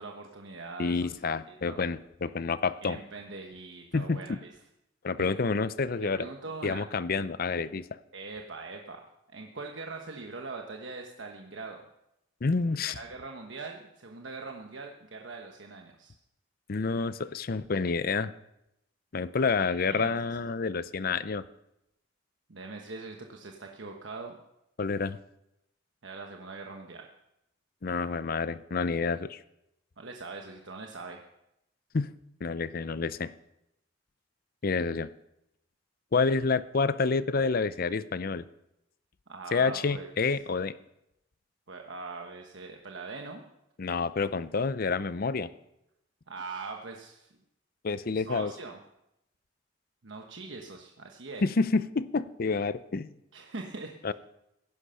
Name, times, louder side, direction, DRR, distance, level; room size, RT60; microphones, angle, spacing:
voice 1, 0.0-1.1 1.5-1.8 2.8-4.5 5.2-5.3 6.0-6.9 8.1-11.8 12.9-16.1 19.6-20.2 22.5-24.4 26.0-27.1 30.0-31.2 39.3-40.1 41.7-43.4 46.3-47.3 48.1-48.8 50.0-51.4 53.3-54.1, right 3 dB, 75° right, 2 dB, 1.1 m, -42 dB
voice 2, 0.8-3.0 3.9-4.4 5.0-6.3 6.6-7.9 12.4-12.9 16.7-18.3 19.1-21.4 24.8-25.2 27.8-29.4 31.9-32.1 32.4-33.3 34.6-35.1 36.1-38.5 39.5-40.8 43.8-45.5 47.8-48.5 51.4-53.1 54.0-54.1, left 4 dB, 50° left, 15 dB, 0.5 m, -28 dB
16.5 x 10.5 x 5.6 m, 0.85 s
head